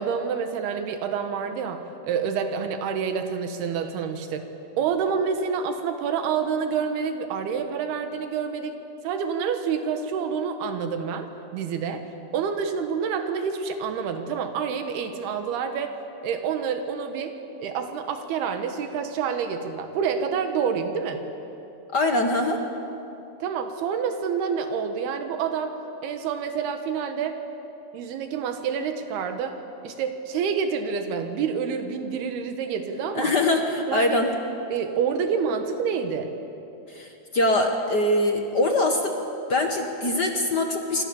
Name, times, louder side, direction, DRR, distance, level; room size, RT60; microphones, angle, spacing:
voice 1, 0.0-4.5 4.8-8.8 9.0-12.0 12.3-16.0 16.2-17.3 17.6-21.2 23.4-25.7 26.0-27.4 27.9-29.6 29.8-33.3 33.9-34.2 34.7-36.3, right 6 dB, 85° right, 6 dB, 3.3 m, -28 dB
voice 2, 21.9-22.6 33.1-34.3 36.9-39.2 39.5-41.0, left 2 dB, 55° left, 3 dB, 1.2 m, -23 dB
28.5 x 25.5 x 7.1 m, 2.9 s
omnidirectional pair, 4.4 m